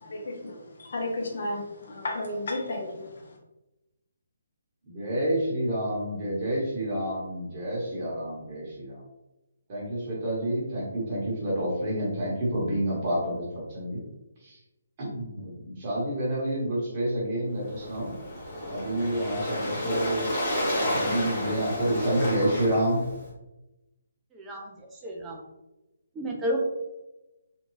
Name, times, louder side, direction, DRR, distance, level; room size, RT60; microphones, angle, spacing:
voice 1, 0.0-3.4, left 2 dB, 55° left, -1 dB, 0.7 m, -33 dB
voice 2, 4.8-9.0 9.7-14.0 14.4-14.6 15.0-18.1 18.7-23.0, right 1 dB, 30° right, -6 dB, 1.1 m, -29 dB
Waves surf, 17.6-23.3, left 1 dB, 20° left, 0.9 m, -31 dB
voice 3, 24.3-24.7 25.0-25.4 26.2-26.6, equal, 10° right, -1 dB, 0.4 m, -31 dB
2.6 x 2.3 x 3.1 m, 0.98 s
hypercardioid pair, 165°, 0 cm